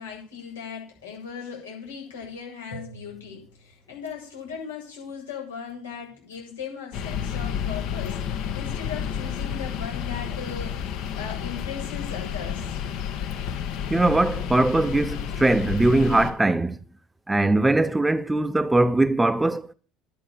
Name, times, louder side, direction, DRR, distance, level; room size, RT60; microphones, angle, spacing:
voice 1, 0.0-12.8, left 6 dB, 85° left, 7.4 m, -38 dB
sound 1, 6.9-16.3, left 8 dB, 60° left, 1.9 m, -31 dB
voice 2, 13.9-16.8 17.3-19.7, right 2 dB, 10° right, 0.8 m, -21 dB
11.0 x 8.7 x 7.1 m
hypercardioid pair, 70°, 0 cm